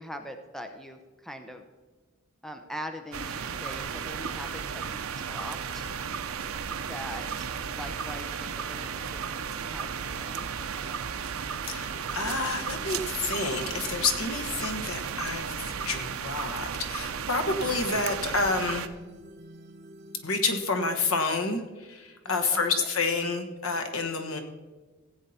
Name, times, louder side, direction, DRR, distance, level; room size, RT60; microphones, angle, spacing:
voice 1, 0.0-1.6 2.4-5.9 6.9-10.5 22.2-22.7, equal, ahead, 6 dB, 0.7 m, -42 dB
sound 1, 3.1-18.9, right 6 dB, 85° right, 0.6 m, -34 dB
sound 2, 11.0-20.6, right 1 dB, 50° right, 0.9 m, -51 dB
voice 2, 11.7-18.9 20.2-24.4, left 3 dB, 85° left, 6 dB, 1.3 m, -29 dB
15.5 x 8.2 x 4.2 m, 1.2 s
head